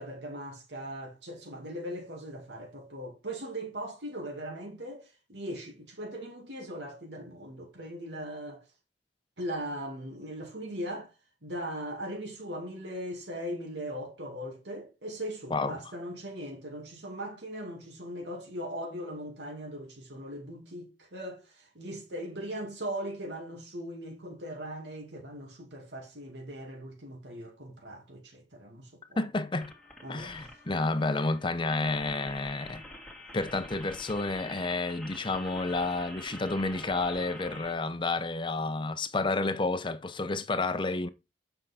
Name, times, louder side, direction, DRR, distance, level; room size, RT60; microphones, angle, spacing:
voice 1, 0.0-8.6 9.4-11.1 11.4-29.2 30.0-30.6, equal, 80° right, 2.4 m, -39 dB
voice 2, 29.2-29.7 30.1-32.8 33.3-41.1, left 3 dB, 30° left, 0.7 m, -30 dB
sound 1, 29.6-37.7, left 1 dB, 5° left, 1.8 m, -47 dB
7.5 x 5.6 x 4.2 m
head